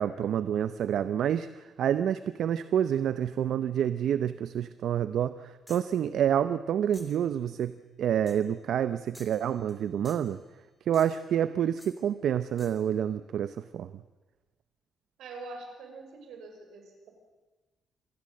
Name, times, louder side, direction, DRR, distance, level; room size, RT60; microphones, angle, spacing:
voice 1, 0.0-10.4 10.9-13.9, right 9 dB, 65° right, 13 dB, 0.7 m, -28 dB
sound 1, 5.7-6.0 6.9-7.3 8.3-8.5 9.1-9.8 10.1-10.4 10.9-11.3 11.8-12.0 12.6-12.9, left 1 dB, 5° left, 2.9 m, -53 dB
voice 2, 15.2-17.1, right 3 dB, 85° right, 4 dB, 5.9 m, -44 dB
26.5 x 19.5 x 7.8 m, 1.2 s
cardioid pair, 145°, 0 cm